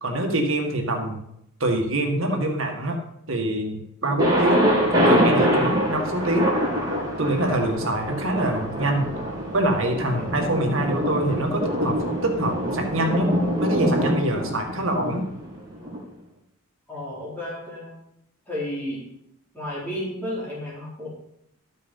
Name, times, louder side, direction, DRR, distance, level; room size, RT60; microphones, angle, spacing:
voice 1, 0.0-1.2 1.6-3.0 3.3-6.5 7.2-9.1 9.5-15.3, right 1 dB, 60° right, 2 dB, 1.9 m, -25 dB
Thunder, 4.2-16.0, equal, 20° right, 3.5 m, -24 dB
voice 2, 16.9-18.0 18.5-19.0 19.5-21.1, left 1 dB, 10° left, -8 dB, 4.1 m, -32 dB
13.0 x 6.6 x 5.5 m, 0.75 s
head